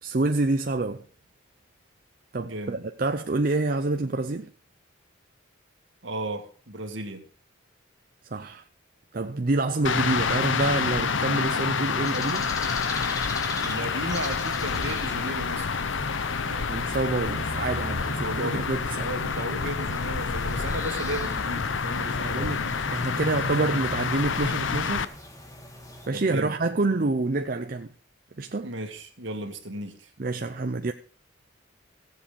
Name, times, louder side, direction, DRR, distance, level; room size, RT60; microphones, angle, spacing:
voice 1, 0.0-1.0 2.3-4.5 8.2-8.6 9.1-12.5 16.7-19.1 22.2-25.1 26.1-27.9 28.4-28.7 30.2-30.9, right 2 dB, 45° right, 0.6 m, -27 dB
voice 2, 2.4-2.8 6.0-7.2 13.6-15.7 16.5-16.8 17.2-17.4 18.0-18.7 19.0-22.7 26.1-26.6 28.6-30.1, right 1 dB, 70° right, 2.1 m, -35 dB
sound 1, 9.8-25.0, left 5 dB, 70° left, 0.7 m, -28 dB
sound 2, 9.9-26.1, left 1 dB, 15° left, 1.6 m, -41 dB
sound 3, 16.7-27.8, equal, 25° right, 1.4 m, -49 dB
16.5 x 7.5 x 5.1 m
head